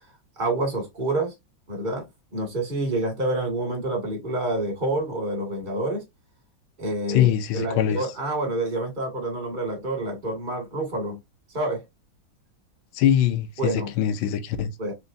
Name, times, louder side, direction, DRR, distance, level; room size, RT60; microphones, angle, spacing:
voice 1, 0.4-1.3 1.7-2.1 2.3-6.0 6.8-11.2 11.5-11.8 13.6-13.9 14.8-14.9, right 2 dB, 25° right, 1.9 m, -28 dB
voice 2, 7.1-8.0 12.9-14.7, left 10 dB, 80° left, 1.5 m, -22 dB
4.4 x 3.0 x 2.6 m
omnidirectional pair, 2.2 m